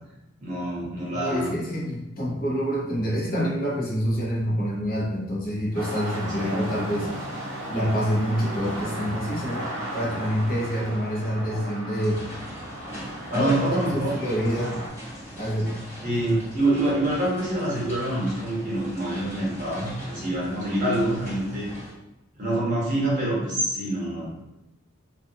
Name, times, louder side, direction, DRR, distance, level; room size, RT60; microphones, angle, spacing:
voice 1, 0.4-1.5 6.4-6.6 13.3-14.2 16.0-21.7 22.3-24.3, right 1 dB, 40° right, -6 dB, 1.0 m, -26 dB
voice 2, 1.1-7.1 7.7-12.2 13.3-13.5 13.9-14.8 15.4-15.7, equal, 45° left, -5 dB, 0.7 m, -27 dB
sound 1, 5.7-14.9, right 1 dB, 65° right, 0.8 m, -35 dB
sound 2, 12.0-21.9, equal, 15° left, 1.0 m, -39 dB
2.4 x 2.3 x 2.7 m, 0.94 s
head